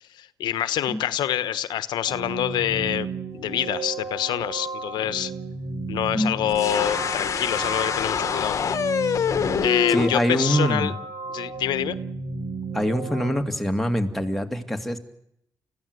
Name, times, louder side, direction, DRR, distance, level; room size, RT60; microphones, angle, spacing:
voice 1, 0.1-3.1 3.3-5.3 5.9-8.6 8.9-9.3 9.6-10.9 11.3-12.0, left 11 dB, 85° left, 14 dB, 1.1 m, -26 dB
sound 1, 2.1-13.4, right 4 dB, 45° right, 4.6 m, -34 dB
sound 2, 6.5-10.1, left 7 dB, 45° left, 1.4 m, -25 dB
voice 2, 9.9-10.9 12.7-15.0, equal, 5° left, 4 dB, 2.5 m, -24 dB
30.0 x 15.5 x 8.2 m, 0.75 s
cardioid pair, 135°, 7 cm